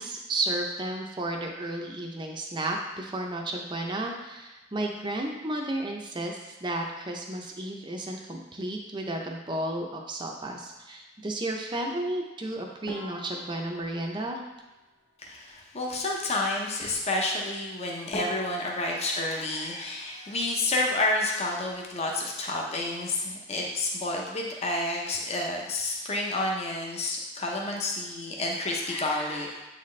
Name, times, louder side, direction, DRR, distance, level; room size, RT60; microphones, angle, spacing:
voice 1, 0.0-14.4, right 1 dB, 25° right, 1 dB, 0.5 m, -33 dB
sound 1, 12.9-15.3 17.6-17.7 18.1-20.9 21.1-21.9 22.2-22.4 22.7-22.8 23.5-23.8, left 1 dB, 45° left, 2.0 m, -44 dB
voice 2, 15.2-29.6, left 2 dB, 30° left, -1 dB, 0.7 m, -30 dB
8.0 x 4.1 x 3.2 m, 1.1 s
head